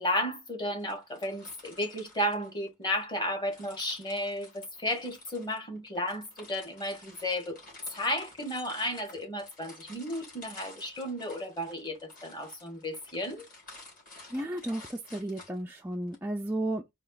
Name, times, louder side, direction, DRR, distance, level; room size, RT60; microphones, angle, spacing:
voice 1, 0.0-7.6 7.9-13.4, left 1 dB, 20° left, 1.3 m, -33 dB
sound 1, 0.8-3.0 3.5-16.2, left 2 dB, 40° left, 2.8 m, -52 dB
voice 2, 14.3-16.9, right 1 dB, 10° right, 0.4 m, -33 dB
4.3 x 2.9 x 3.9 m
head